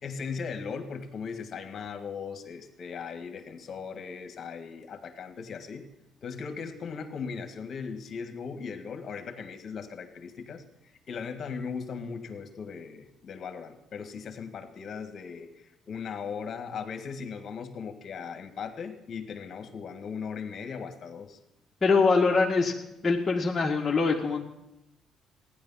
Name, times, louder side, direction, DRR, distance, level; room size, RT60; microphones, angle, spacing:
voice 1, 0.0-5.9 6.2-21.4, left 6 dB, 50° left, 7 dB, 1.7 m, -38 dB
voice 2, 21.8-22.7 23.0-24.4, left 4 dB, 25° left, -2 dB, 1.7 m, -23 dB
15.5 x 10.5 x 5.7 m, 0.89 s
cardioid pair, 85°, 0 cm